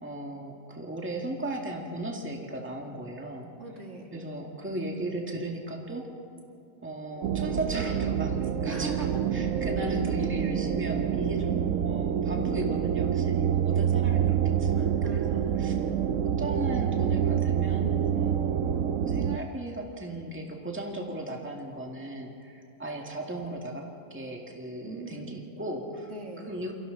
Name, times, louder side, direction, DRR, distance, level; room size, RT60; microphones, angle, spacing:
voice 1, 0.0-3.5 4.1-6.1 6.8-15.8 16.2-26.1 26.4-26.7, right 1 dB, 10° right, 0 dB, 2.1 m, -36 dB
voice 2, 3.6-4.1 8.7-9.2 15.0-16.2 24.8-25.4 26.1-26.5, right 3 dB, 55° right, 0 dB, 2.6 m, -41 dB
sound 1, 7.2-19.4, right 9 dB, 70° right, 1.1 m, -27 dB
29.0 x 24.0 x 4.0 m, 2.6 s
omnidirectional pair, 1.5 m